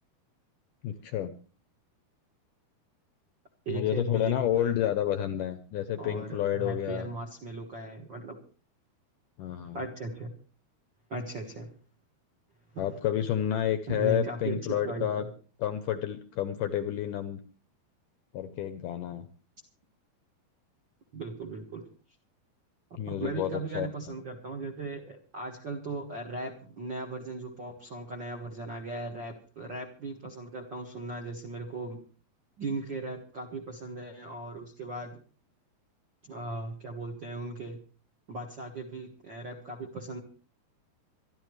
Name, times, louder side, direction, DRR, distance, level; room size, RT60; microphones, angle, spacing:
voice 1, 0.8-1.3 3.7-7.1 9.4-9.8 12.8-15.3 15.6-17.4 18.3-19.3 23.0-24.2, left 11 dB, 80° left, 10 dB, 1.9 m, -30 dB
voice 2, 3.6-4.7 6.0-8.4 9.7-10.3 11.1-11.7 12.7-12.9 13.9-15.3 21.1-21.8 22.9-32.0 32.6-35.2 36.2-37.8 38.3-40.2, right 3 dB, 55° right, 1 dB, 1.3 m, -38 dB
25.5 x 11.5 x 3.2 m, 0.39 s
omnidirectional pair, 4.6 m